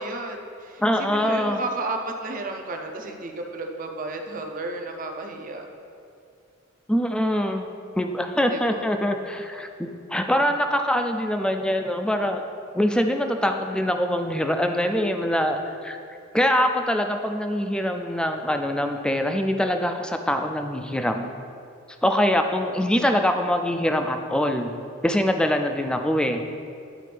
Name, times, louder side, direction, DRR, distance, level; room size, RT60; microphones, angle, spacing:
voice 1, 0.0-0.8 1.1-5.6 8.5-8.8, right 2 dB, 40° right, 3 dB, 0.6 m, -32 dB
voice 2, 0.8-1.6 6.9-7.7 8.0-12.5 12.7-16.0 16.3-21.3 22.0-24.7 25.0-26.4, equal, 5° left, 5 dB, 0.3 m, -24 dB
11.0 x 4.2 x 3.3 m, 2.4 s
head